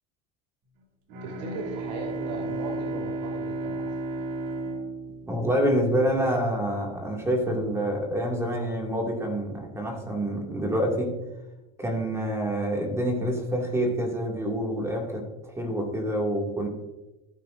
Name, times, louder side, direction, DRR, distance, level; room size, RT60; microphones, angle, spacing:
Bowed string instrument, 1.1-6.0, right 2 dB, 65° right, 2.4 m, -33 dB
voice 1, 1.2-3.9, right 3 dB, 90° right, 0 dB, 2.5 m, -38 dB
voice 2, 5.3-11.1 11.8-16.7, equal, 15° right, 0 dB, 2.3 m, -27 dB
15.0 x 8.4 x 2.6 m, 1.1 s
supercardioid pair, 115°, 21 cm